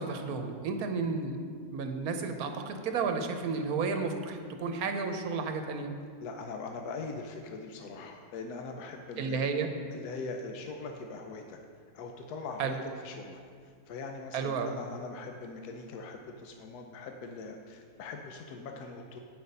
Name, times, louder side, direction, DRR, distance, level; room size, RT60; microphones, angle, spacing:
voice 1, 0.0-1.4 1.7-5.9 9.2-9.7 12.6-12.7 14.3-14.7, right 4 dB, 75° right, 6 dB, 1.2 m, -32 dB
voice 2, 6.2-9.5 9.9-11.6 11.9-19.2, left 4 dB, 85° left, 3 dB, 1.2 m, -42 dB
8.5 x 6.0 x 5.3 m, 2.1 s
omnidirectional pair, 1.6 m